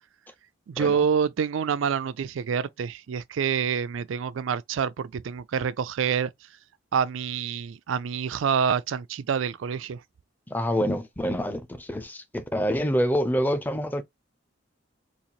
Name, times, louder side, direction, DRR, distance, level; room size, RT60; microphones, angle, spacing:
voice 1, 0.7-6.3 6.9-10.0, right 7 dB, 85° right, 0.4 m, -27 dB
voice 2, 10.5-14.0, equal, 10° left, 0.5 m, -26 dB
4.0 x 2.5 x 2.9 m
head